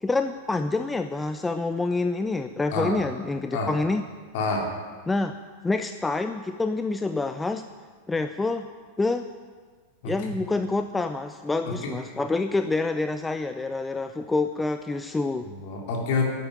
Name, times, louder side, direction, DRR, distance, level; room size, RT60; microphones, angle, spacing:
voice 1, 0.0-4.1 5.1-5.3 5.6-7.7 8.1-8.7 9.0-9.3 10.0-15.5, left 3 dB, 10° left, 9 dB, 0.6 m, -27 dB
voice 2, 4.3-4.7 10.0-10.1 11.6-11.9 15.6-16.3, left 3 dB, 50° left, 0 dB, 3.5 m, -27 dB
12.5 x 9.3 x 9.0 m, 1.5 s
figure-of-eight pair, 90°, 0 cm